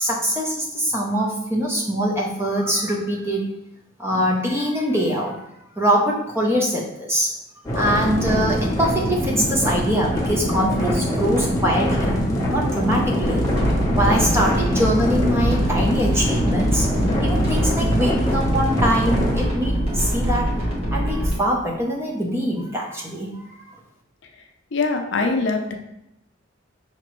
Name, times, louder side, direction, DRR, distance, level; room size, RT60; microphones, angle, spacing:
voice 1, 0.0-3.5 4.0-5.5 5.8-7.3 7.7-12.2 12.5-16.9 17.2-20.5 20.9-23.8, equal, 10° right, -2 dB, 0.6 m, -23 dB
sound 1, 7.6-19.4, equal, 15° left, 0.8 m, -23 dB
sound 2, 13.2-21.3, equal, 30° right, 1.1 m, -24 dB
voice 2, 24.7-25.8, left 3 dB, 60° left, 4 dB, 0.5 m, -22 dB
5.9 x 3.0 x 3.0 m, 0.82 s
head